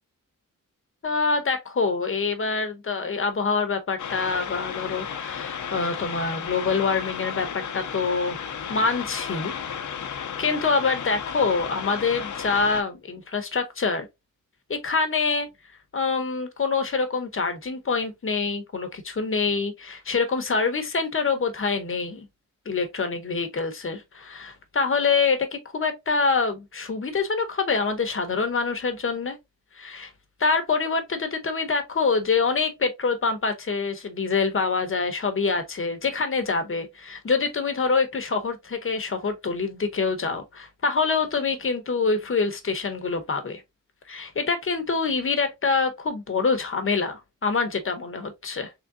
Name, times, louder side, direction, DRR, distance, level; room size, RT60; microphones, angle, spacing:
voice 1, 1.0-8.4 8.7-9.5 10.4-14.1 14.7-15.5 15.9-22.3 22.7-29.4 29.7-30.1 30.4-43.6 44.1-48.7, left 4 dB, 40° left, 0.8 m, -25 dB
sound 1, 4.0-12.8, left 7 dB, 65° left, 0.6 m, -33 dB
3.6 x 3.3 x 2.5 m
wide cardioid pair, 165°, 32 cm